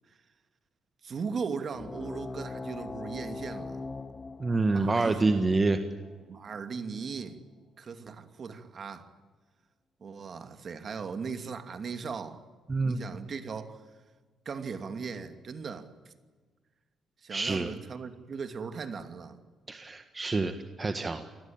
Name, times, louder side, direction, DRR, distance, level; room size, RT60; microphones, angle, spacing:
voice 1, 1.0-3.8 4.7-5.5 6.3-7.4 7.8-9.1 10.0-12.4 12.8-13.8 14.4-16.1 17.2-19.4, right 5 dB, 50° right, 8 dB, 2.7 m, -38 dB
sound 1, 1.7-6.8, left 3 dB, 25° left, 1.2 m, -42 dB
voice 2, 4.4-5.8 12.7-13.2 17.3-17.7 19.7-21.3, right 3 dB, 25° right, 8 dB, 1.6 m, -27 dB
28.5 x 20.0 x 9.0 m, 1.4 s
cardioid pair, 90°, 0 cm